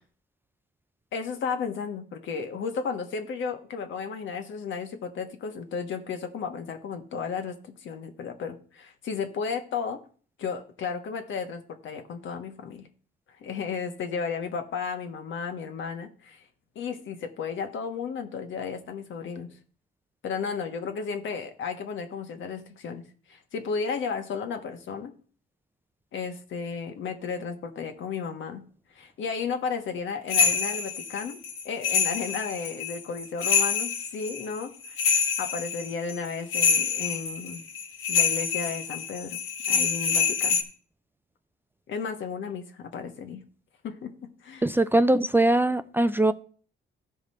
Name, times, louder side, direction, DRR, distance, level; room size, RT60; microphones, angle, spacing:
voice 1, 1.1-10.0 10.4-12.9 13.4-16.4 16.7-19.5 20.2-23.0 23.3-25.1 26.1-28.6 28.9-31.4 31.6-35.0 35.4-37.6 38.1-39.4 39.7-40.6 41.9-43.4 43.8-44.1 44.4-44.7, left 5 dB, 75° left, 6 dB, 1.4 m, -33 dB
sound 1, 30.3-40.6, left 6 dB, 90° left, 1.5 m, -26 dB
voice 2, 44.6-46.3, right 2 dB, 10° right, 12 dB, 0.4 m, -21 dB
14.0 x 5.0 x 4.3 m, 0.43 s
cardioid pair, 90°, 20 cm